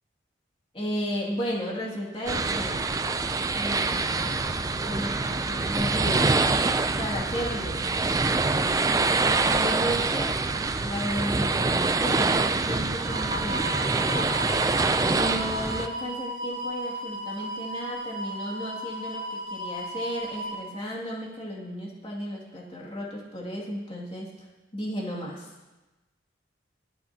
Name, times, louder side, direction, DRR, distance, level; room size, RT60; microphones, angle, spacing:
voice 1, 0.7-2.9 3.5-4.3 4.8-6.3 7.0-7.8 8.8-10.4 10.8-13.7 15.1-24.3 24.7-25.5, equal, 30° left, -3 dB, 2.3 m, -34 dB
sound 1, 2.3-15.9, right 3 dB, 20° right, 0.4 m, -25 dB
sound 2, 2.7-2.8 3.2-3.3 3.7-3.9 4.2-5.4 5.8-5.9 6.2-6.3 6.8-6.9 7.3-7.4 7.8-7.9 8.3-8.4 8.8-8.9 9.3-9.4 9.8-9.9 10.3-11.9 12.2-12.4 12.9-13.3 13.6-14.1 14.6-14.7, right 1 dB, 5° right, 3.5 m, -52 dB
sound 3, 12.9-20.5, equal, 50° right, 2.2 m, -35 dB
23.0 x 8.6 x 2.8 m, 1.1 s
head